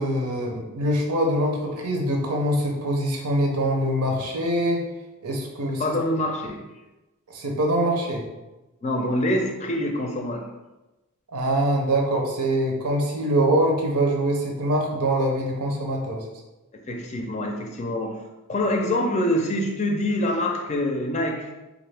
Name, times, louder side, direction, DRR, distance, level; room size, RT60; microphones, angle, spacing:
voice 1, 0.0-4.8 5.2-5.9 7.3-8.3 11.3-16.2, right 1 dB, 90° right, 1 dB, 0.8 m, -24 dB
voice 2, 5.8-6.6 8.8-10.5 16.9-18.2 18.5-21.5, left 1 dB, 30° left, 3 dB, 0.4 m, -25 dB
3.4 x 2.6 x 3.3 m, 1.1 s
head